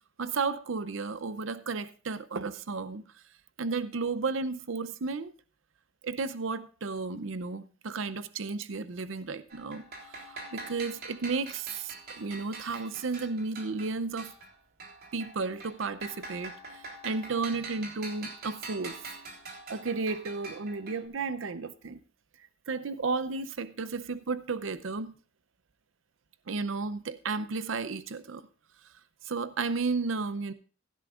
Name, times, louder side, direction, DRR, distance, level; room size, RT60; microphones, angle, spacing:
voice 1, 0.2-3.2 3.6-5.3 6.0-14.3 15.1-19.0 19.7-22.0 22.7-25.2 26.5-28.5 28.8-28.9 29.2-30.5, right 4 dB, 70° right, 0.6 m, -33 dB
sound 1, 9.5-14.5 14.8-21.0, right 3 dB, 50° right, 3.5 m, -45 dB
15.5 x 12.0 x 2.4 m
head